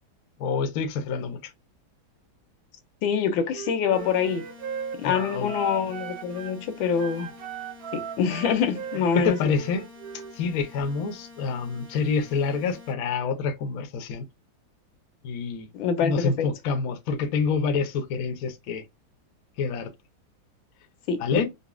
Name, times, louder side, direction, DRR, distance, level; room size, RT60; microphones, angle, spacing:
voice 1, 0.4-1.4 5.0-5.5 9.1-9.8 10.3-14.2 15.2-15.7 16.0-18.8 19.6-19.9 21.2-21.4, left 5 dB, 65° left, 0.9 m, -27 dB
voice 2, 3.0-4.4 5.0-7.3 7.9-9.5 15.7-16.5 21.1-21.4, left 7 dB, 85° left, 1.4 m, -25 dB
Wind instrument woodwind instrument, 3.5-6.6 6.9-10.4, right 7 dB, 80° right, 0.8 m, -38 dB
sound 1, 3.9-12.9, left 3 dB, 10° right, 0.8 m, -48 dB
4.0 x 2.0 x 2.4 m
omnidirectional pair, 2.2 m